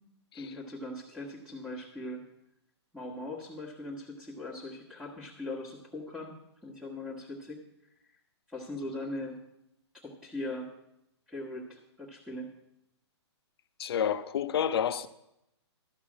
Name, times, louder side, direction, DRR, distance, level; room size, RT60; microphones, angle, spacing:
voice 1, 0.4-2.2 2.9-6.4 6.6-7.6 8.5-9.4 10.0-10.7 11.3-12.5, left 1 dB, ahead, 1.4 m, -40 dB
voice 2, 13.8-15.1, left 9 dB, 60° left, 0.7 m, -29 dB
12.5 x 5.4 x 7.4 m
hypercardioid pair, 155°, 15 cm